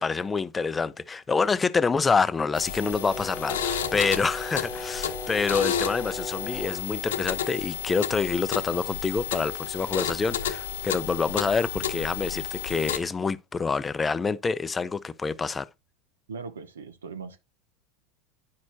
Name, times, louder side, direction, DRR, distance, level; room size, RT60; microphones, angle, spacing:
voice 1, 0.0-15.7, left 4 dB, 20° left, 0.5 m, -27 dB
sound 1, 2.5-13.0, left 9 dB, 80° left, 1.0 m, -32 dB
Brass instrument, 2.6-6.9, left 1 dB, 5° right, 1.3 m, -38 dB
voice 2, 16.3-17.4, right 5 dB, 85° right, 0.8 m, -39 dB
9.5 x 6.1 x 2.7 m
hypercardioid pair, 85°, 0 cm